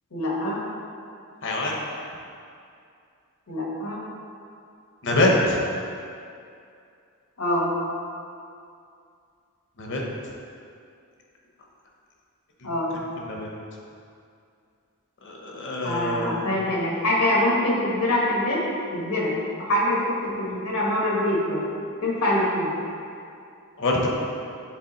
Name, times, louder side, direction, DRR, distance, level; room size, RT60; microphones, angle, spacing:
voice 1, 0.1-0.6 3.5-4.0 7.4-7.7 12.6-13.0 15.8-18.6 18.9-21.6 22.0-22.7, left 1 dB, 80° left, -4 dB, 1.3 m, -24 dB
voice 2, 1.4-1.8 5.0-5.6 9.8-10.0 13.3-13.5 15.2-16.5 23.8-24.1, left 1 dB, 60° left, -1 dB, 0.9 m, -24 dB
7.3 x 3.6 x 3.9 m, 2.4 s
head